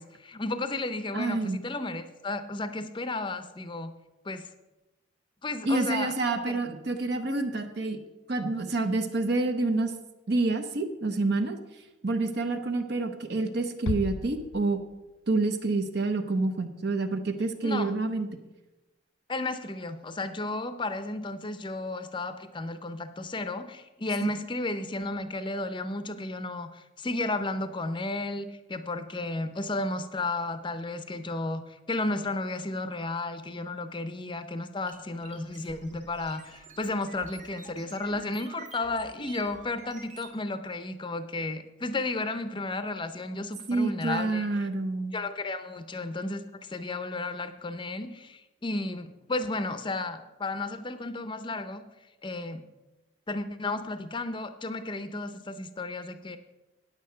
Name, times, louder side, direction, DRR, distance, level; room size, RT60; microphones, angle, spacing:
voice 1, 0.0-3.9 4.2-4.4 5.4-6.1 6.5-6.6 17.6-17.9 19.3-31.6 31.9-44.5 45.1-46.4 46.7-51.8 52.2-52.6 53.3-56.4, left 2 dB, 25° left, 11 dB, 0.6 m, -33 dB
voice 2, 1.1-1.6 5.6-8.0 8.3-9.9 10.3-11.6 12.0-14.8 15.3-18.4 43.7-45.1, right 3 dB, 55° right, 7 dB, 0.8 m, -28 dB
Bass drum, 13.9-15.3, left 4 dB, 75° left, 0.4 m, -35 dB
sound 1, 34.9-40.4, right 4 dB, 35° right, 1.3 m, -48 dB
9.3 x 8.5 x 5.6 m, 1.0 s
head